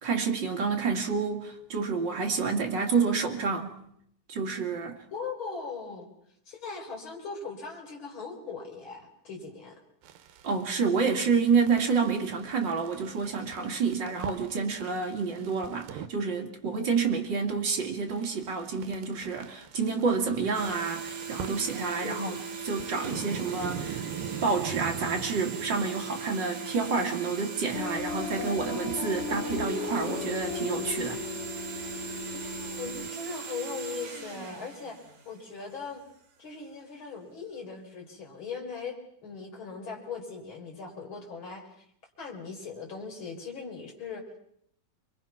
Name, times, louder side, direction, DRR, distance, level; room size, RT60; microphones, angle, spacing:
voice 1, 0.0-3.8 4.3-5.0 10.4-24.0 24.4-31.3, right 5 dB, 35° right, 1 dB, 2.4 m, -29 dB
voice 2, 5.1-6.1 6.5-9.8 22.0-22.3 32.3-35.0 35.2-36.0 36.4-41.7 42.2-44.2, left 5 dB, 35° left, 0 dB, 4.8 m, -39 dB
sound 1, 10.0-16.1 18.1-26.3, right 9 dB, 75° right, 2.8 m, -43 dB
sound 2, 20.5-35.8, right 6 dB, 60° right, 4.0 m, -39 dB
sound 3, 27.7-33.1, left 6 dB, 75° left, 1.3 m, -36 dB
26.5 x 22.0 x 5.9 m, 0.71 s
omnidirectional pair, 4.1 m